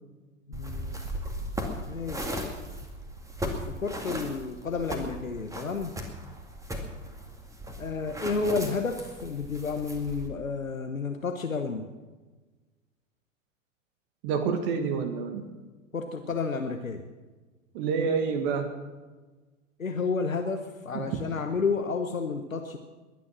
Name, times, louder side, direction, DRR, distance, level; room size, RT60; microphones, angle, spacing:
voice 1, 0.5-1.0 1.4-2.4 3.4-6.0 7.8-11.9 15.9-17.1 19.8-22.8, left 4 dB, 85° left, 6 dB, 1.1 m, -31 dB
sound 1, 0.5-10.3, equal, 10° right, 2.1 m, -37 dB
voice 2, 14.2-15.5 17.7-18.7 20.9-21.2, right 6 dB, 45° right, 8 dB, 1.6 m, -28 dB
21.5 x 9.7 x 6.2 m, 1.3 s
figure-of-eight pair, 95°, 39 cm